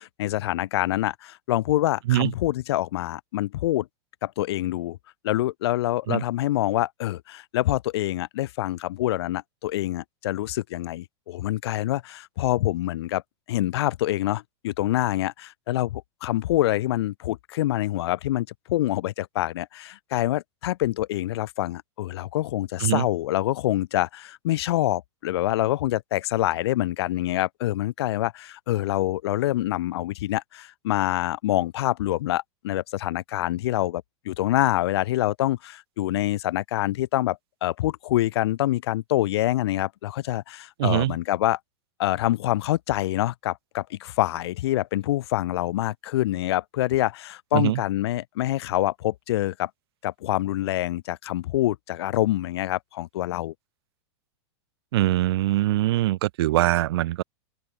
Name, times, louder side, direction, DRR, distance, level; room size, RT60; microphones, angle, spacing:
voice 1, 0.0-3.9 4.2-5.0 5.2-13.2 13.5-41.6 42.0-49.7 50.0-53.5, left 15 dB, 65° left, 0.9 m, -26 dB
voice 2, 40.8-41.1 47.5-47.8 54.9-57.2, right 15 dB, 65° right, 0.6 m, -22 dB
open air
supercardioid pair, 160°, 14 cm